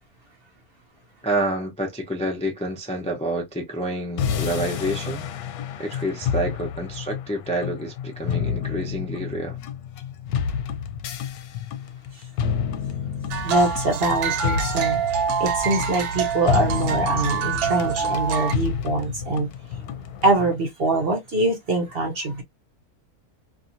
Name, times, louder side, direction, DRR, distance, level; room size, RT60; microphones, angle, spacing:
voice 1, 1.2-5.3 5.8-9.6, right 1 dB, 5° left, 0.5 m, -28 dB
sound 1, 4.2-20.5, left 7 dB, 80° left, 1.1 m, -30 dB
sound 2, 13.3-18.5, right 6 dB, 80° right, 1.1 m, -26 dB
voice 2, 13.4-19.5 20.2-22.4, right 2 dB, 50° right, 0.8 m, -24 dB
2.8 x 2.7 x 2.5 m
omnidirectional pair, 1.6 m